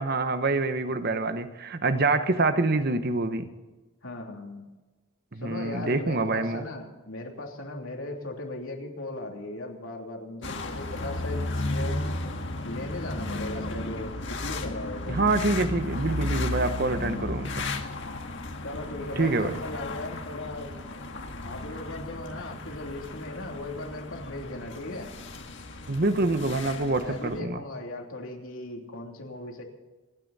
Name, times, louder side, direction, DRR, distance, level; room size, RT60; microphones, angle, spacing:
voice 1, 0.0-3.5 5.3-6.6 15.1-17.7 19.2-19.5 25.9-27.6, right 3 dB, 50° right, 10 dB, 1.1 m, -26 dB
voice 2, 4.0-4.7 5.4-12.0 12.6-15.2 18.6-20.7 21.4-25.1 27.0-29.6, left 2 dB, 80° left, 1 dB, 3.0 m, -37 dB
sound 1, 10.4-27.4, left 2 dB, 60° left, 1.6 m, -34 dB
28.0 x 9.6 x 4.2 m, 1.2 s
head